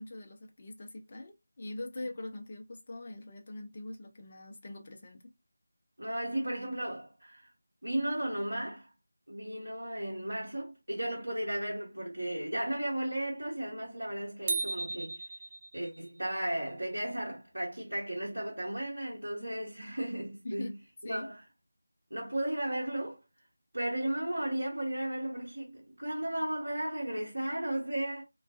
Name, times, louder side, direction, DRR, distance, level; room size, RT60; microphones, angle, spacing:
voice 1, 0.0-5.3 20.4-20.8 21.0-21.3, left 2 dB, 30° left, 0.6 m, -42 dB
voice 2, 6.0-7.5 7.8-8.9 9.3-15.2 15.7-20.7 21.0-21.4 22.1-23.2 23.7-28.2, right 1 dB, 70° right, 0.9 m, -35 dB
sound 1, 14.5-16.1, right 3 dB, 20° right, 0.4 m, -35 dB
2.4 x 2.2 x 2.3 m
figure-of-eight pair, 165°, 0 cm